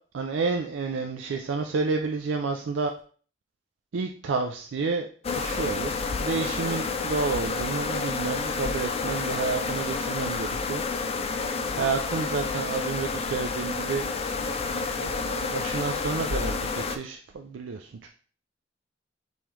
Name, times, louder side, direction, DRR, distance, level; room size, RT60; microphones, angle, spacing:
voice 1, 0.1-2.9 3.9-5.1 5.4-10.8 11.7-14.1 15.0-18.1, right 4 dB, 90° right, 4 dB, 0.4 m, -30 dB
sound 1, 5.2-17.0, left 4 dB, 35° left, 0.4 m, -29 dB
5.4 x 3.2 x 3.0 m, 0.44 s
head